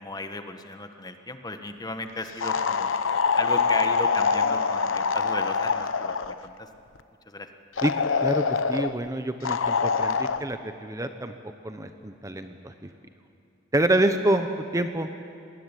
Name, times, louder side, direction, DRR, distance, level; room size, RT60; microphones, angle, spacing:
voice 1, 0.0-2.9 3.3-6.7 7.3-7.5, left 2 dB, 20° left, 7 dB, 1.5 m, -35 dB
sound 1, 2.4-6.4 7.8-8.9 9.4-10.4, left 5 dB, 85° left, 0.9 m, -24 dB
voice 2, 8.2-11.3 11.6-12.7 13.7-14.5 14.7-15.1, right 1 dB, 15° right, 8 dB, 0.9 m, -26 dB
26.5 x 19.5 x 9.9 m, 2.5 s
head